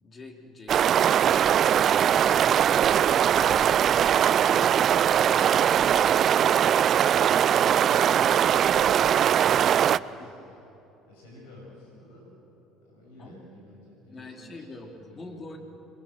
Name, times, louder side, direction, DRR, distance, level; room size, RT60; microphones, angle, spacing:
voice 1, 0.0-5.0 10.2-10.3 13.2-13.4 14.1-15.6, left 2 dB, 35° left, 2 dB, 3.8 m, -46 dB
sound 1, 0.7-10.0, right 9 dB, 50° right, 0.5 m, -21 dB
voice 2, 7.0-10.6 11.1-12.3 12.8-15.6, left 1 dB, 80° left, -3 dB, 7.8 m, -50 dB
26.5 x 23.0 x 7.8 m, 2.9 s
hypercardioid pair, 65°, 0 cm